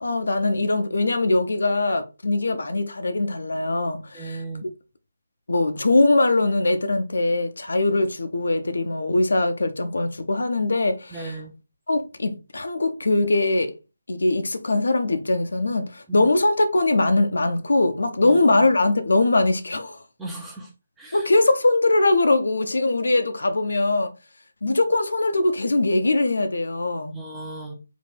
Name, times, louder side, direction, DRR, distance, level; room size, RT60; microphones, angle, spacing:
voice 1, 0.0-4.7 5.5-11.4 11.9-13.7 14.1-20.0 21.1-24.1 24.6-27.2, left 2 dB, 65° left, 0.6 m, -21 dB
voice 2, 4.1-4.6 11.1-11.5 16.1-16.3 18.2-18.7 20.2-20.7 21.0-21.3 27.1-27.7, right 2 dB, 5° right, 0.8 m, -36 dB
3.9 x 2.6 x 3.7 m
figure-of-eight pair, 150°, 0 cm